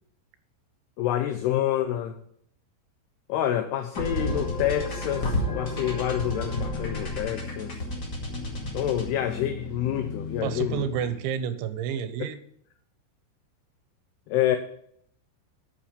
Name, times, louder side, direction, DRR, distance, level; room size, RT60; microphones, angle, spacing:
voice 1, 1.0-2.2 3.3-7.8 8.7-10.9 14.3-14.6, left 11 dB, 80° left, 2.5 m, -27 dB
sound 1, 3.9-11.3, left 1 dB, 40° left, 1.6 m, -32 dB
voice 2, 10.4-12.4, right 8 dB, 85° right, 3.2 m, -30 dB
8.7 x 8.5 x 5.2 m
omnidirectional pair, 5.2 m